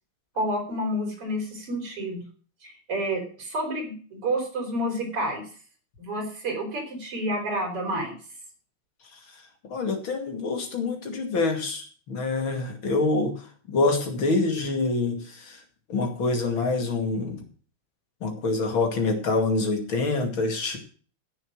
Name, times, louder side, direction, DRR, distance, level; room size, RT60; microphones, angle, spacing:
voice 1, 0.4-2.2 2.6-5.5 6.0-8.1, right 1 dB, 90° right, 2 dB, 5.6 m, -29 dB
voice 2, 9.7-13.4 13.7-15.6 15.9-17.4 18.2-20.8, left 3 dB, 65° left, 4 dB, 3.2 m, -26 dB
15.0 x 7.1 x 6.4 m, 0.41 s
omnidirectional pair, 2.4 m